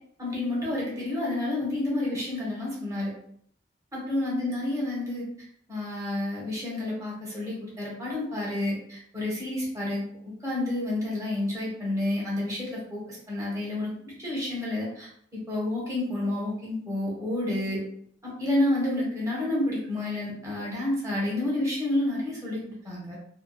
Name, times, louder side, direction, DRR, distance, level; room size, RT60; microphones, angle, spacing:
voice 1, 0.2-3.1 3.9-5.3 5.7-10.0 10.4-17.8 18.2-23.2, left 1 dB, 20° right, -5 dB, 1.0 m, -29 dB
2.7 x 2.2 x 2.3 m, 0.63 s
head